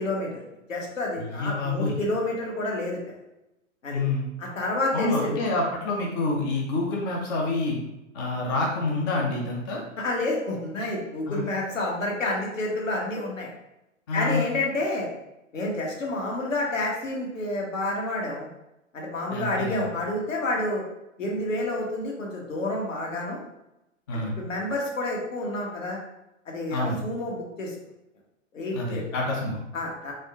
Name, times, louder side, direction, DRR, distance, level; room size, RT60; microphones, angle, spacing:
voice 1, 0.0-3.2 3.8-4.0 4.4-5.5 10.0-13.5 14.1-15.1 15.5-18.5 18.9-20.8 21.2-23.4 24.1-26.0 26.5-27.8 28.5-29.0 29.7-30.1, left 2 dB, 75° left, -2 dB, 1.2 m, -29 dB
voice 2, 1.2-1.9 3.9-4.2 4.9-7.8 8.1-9.8 11.3-11.4 14.1-14.4 19.3-19.9 24.1-24.4 26.7-27.0 28.7-29.6, left 2 dB, 20° left, -1 dB, 0.3 m, -27 dB
4.2 x 2.3 x 3.5 m, 0.91 s
figure-of-eight pair, 105°, 39 cm